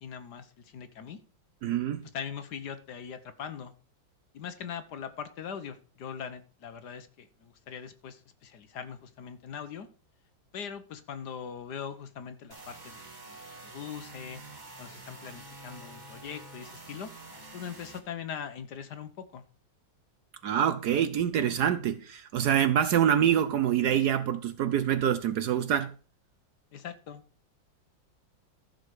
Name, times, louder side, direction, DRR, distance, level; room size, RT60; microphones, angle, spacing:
voice 1, 0.0-1.2 2.1-3.7 4.3-9.9 10.5-14.4 14.8-19.4 26.7-27.2, left 7 dB, 60° left, 1.4 m, -41 dB
voice 2, 1.6-2.1 20.4-25.9, right 9 dB, 65° right, 1.1 m, -26 dB
sound 1, 12.5-18.0, right 2 dB, 25° right, 1.8 m, -47 dB
14.0 x 6.5 x 4.9 m
omnidirectional pair, 2.1 m